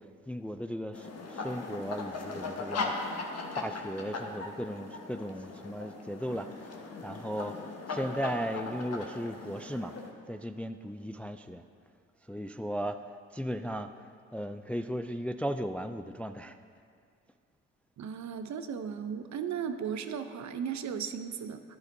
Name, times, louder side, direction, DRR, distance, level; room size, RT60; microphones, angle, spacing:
voice 1, 0.0-3.0 3.6-9.9 10.3-11.6 12.3-16.6, equal, 5° left, 9 dB, 0.3 m, -36 dB
sound 1, 0.9-10.1, left 3 dB, 50° left, 1.3 m, -39 dB
voice 2, 18.0-21.6, right 7 dB, 60° right, 9 dB, 0.7 m, -36 dB
12.0 x 10.5 x 2.7 m, 2.2 s
supercardioid pair, 55°, 32 cm